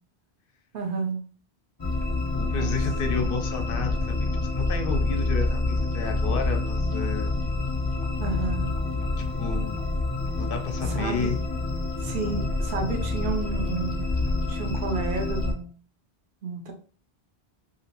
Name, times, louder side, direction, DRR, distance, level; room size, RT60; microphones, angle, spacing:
voice 1, 0.7-1.2 2.6-2.8 3.1-3.2 8.2-8.8 10.9-11.3 12.0-14.1 14.5-15.7 16.4-16.7, right 4 dB, 60° right, 3 dB, 0.8 m, -31 dB
sound 1, 1.8-15.5, left 2 dB, 30° left, 0.7 m, -27 dB
voice 2, 2.3-7.3 9.2-9.9 10.4-11.5, left 5 dB, 60° left, 5 dB, 0.8 m, -32 dB
2.9 x 2.8 x 2.9 m, 0.41 s
omnidirectional pair, 1.1 m